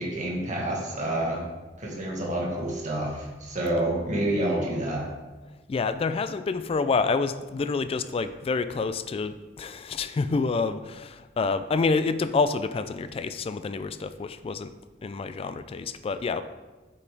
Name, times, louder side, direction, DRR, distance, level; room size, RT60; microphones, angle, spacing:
voice 1, 0.0-1.4 1.8-5.1, right 1 dB, 40° right, -3 dB, 1.9 m, -28 dB
voice 2, 5.7-14.7 15.0-16.4, left 4 dB, 30° left, 11 dB, 0.3 m, -28 dB
7.9 x 5.8 x 3.4 m, 1.2 s
head